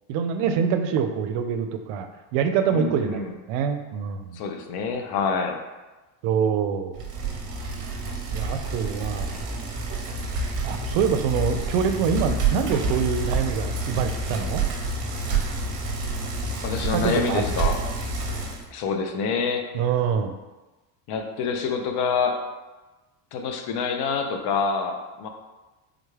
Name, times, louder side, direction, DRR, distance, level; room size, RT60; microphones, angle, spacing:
voice 1, 0.1-4.4 6.2-7.0 8.3-9.4 10.6-14.7 16.9-17.4 19.7-20.4, right 7 dB, 80° right, 7 dB, 0.5 m, -25 dB
voice 2, 2.7-3.3 4.3-5.6 16.6-17.8 18.7-19.6 21.1-22.4 23.3-25.3, left 5 dB, 60° left, 4 dB, 0.6 m, -26 dB
Bicycle, 7.0-18.6, right 3 dB, 45° right, 0.7 m, -28 dB
3.7 x 2.3 x 3.2 m, 1.1 s
cardioid pair, 120°, 44 cm